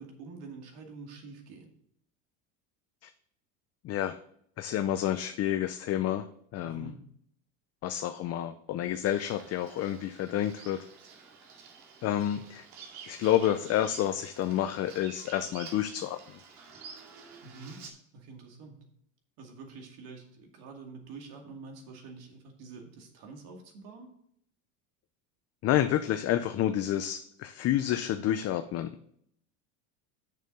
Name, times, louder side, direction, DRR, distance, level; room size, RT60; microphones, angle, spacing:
voice 1, 0.0-1.7 6.6-7.0 17.4-17.8 18.1-18.8 19.4-24.1, right 4 dB, 60° right, 2 dB, 2.3 m, -47 dB
voice 2, 3.8-4.2 4.6-6.3 6.5-6.9 7.8-10.8 12.0-12.6 13.1-16.2 25.6-28.9, left 11 dB, 35° left, 9 dB, 0.5 m, -29 dB
Bird vocalization bird call bird song, 9.0-17.9, right 5 dB, 80° right, 2.2 m, -50 dB
6.8 x 6.4 x 5.3 m, 0.67 s
supercardioid pair, 125°, 42 cm